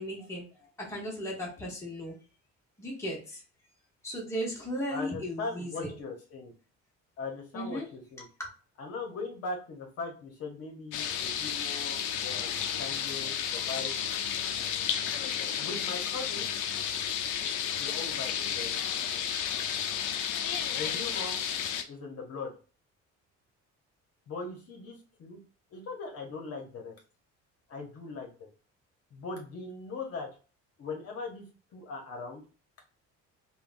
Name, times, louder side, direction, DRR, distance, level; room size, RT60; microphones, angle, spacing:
voice 1, 0.0-2.2 2.8-3.4 4.0-5.9 7.5-7.9 8.2-8.5, equal, 10° left, -4 dB, 1.0 m, -36 dB
voice 2, 4.9-6.5 7.2-8.3 8.8-14.0 15.6-16.5 17.8-18.9 20.7-21.4 21.9-22.5 24.3-25.4 25.7-26.9 27.7-28.5 29.1-30.3 30.8-31.5 31.7-32.4, left 3 dB, 55° left, 1 dB, 0.9 m, -40 dB
sound 1, 10.9-21.8, left 8 dB, 80° left, 0.5 m, -32 dB
3.4 x 2.3 x 2.5 m, 0.35 s
cardioid pair, 145°, 30 cm